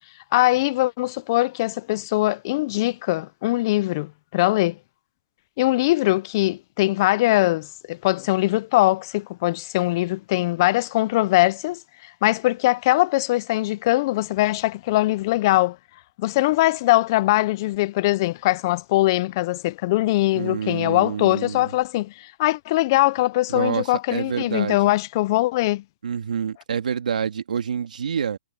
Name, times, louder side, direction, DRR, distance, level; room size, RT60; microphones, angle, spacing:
voice 1, 0.3-4.8 5.6-15.8 16.2-25.8, left 18 dB, 25° left, 0.4 m, -21 dB
voice 2, 20.3-21.7 23.5-24.8 26.0-28.4, right 7 dB, 65° right, 2.4 m, -27 dB
hypercardioid pair, 160°, 5 cm